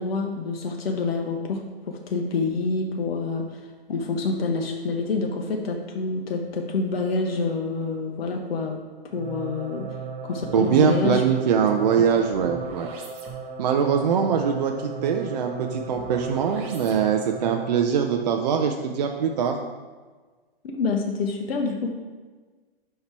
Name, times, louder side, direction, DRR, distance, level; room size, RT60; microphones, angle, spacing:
voice 1, 0.0-3.6 3.9-8.8 9.1-10.0 10.2-11.2 20.6-21.9, left 4 dB, 70° left, 2 dB, 0.9 m, -27 dB
sound 1, 9.1-17.9, right 5 dB, 20° right, 0.8 m, -36 dB
voice 2, 10.5-12.9 13.6-19.6, right 7 dB, 45° right, 3 dB, 0.5 m, -22 dB
5.6 x 4.3 x 4.5 m, 1.4 s
hypercardioid pair, 145°, 30 cm